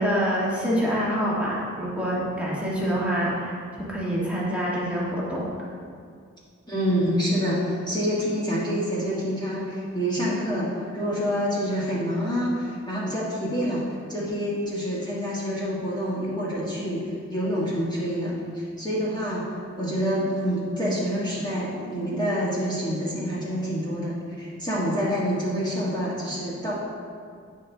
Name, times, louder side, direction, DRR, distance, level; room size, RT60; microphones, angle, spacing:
voice 1, 0.0-5.4, equal, 5° right, -7 dB, 1.7 m, -26 dB
voice 2, 6.7-13.8 14.1-17.0 17.3-26.7, equal, 15° left, -9 dB, 1.5 m, -27 dB
9.2 x 4.4 x 3.5 m, 2.2 s
wide cardioid pair, 60°, 29 cm